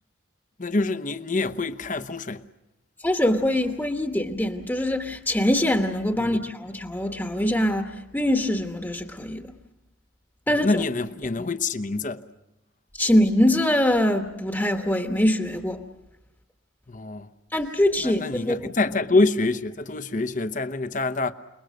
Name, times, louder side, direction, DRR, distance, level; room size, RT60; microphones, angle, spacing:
voice 1, 0.6-2.4 6.2-6.4 10.5-12.2 16.9-17.3 18.0-21.3, left 3 dB, 40° left, 0.9 m, -26 dB
voice 2, 3.0-9.5 10.5-10.7 13.0-15.8 17.5-18.7, left 1 dB, 10° left, 1.2 m, -23 dB
29.0 x 21.0 x 6.4 m
head